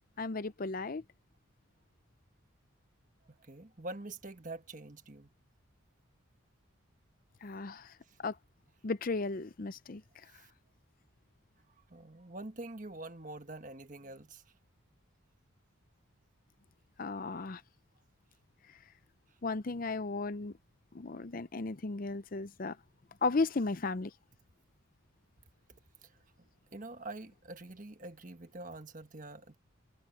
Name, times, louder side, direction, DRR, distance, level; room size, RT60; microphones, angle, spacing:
voice 1, 0.2-1.0 7.4-7.9 8.2-8.3 8.8-10.0 17.0-17.6 19.4-20.5 20.9-22.8 23.2-24.1, left 3 dB, 40° left, 0.5 m, -35 dB
voice 2, 3.3-5.3 10.2-10.5 11.9-14.4 26.4-29.6, right 2 dB, 35° right, 1.4 m, -46 dB
head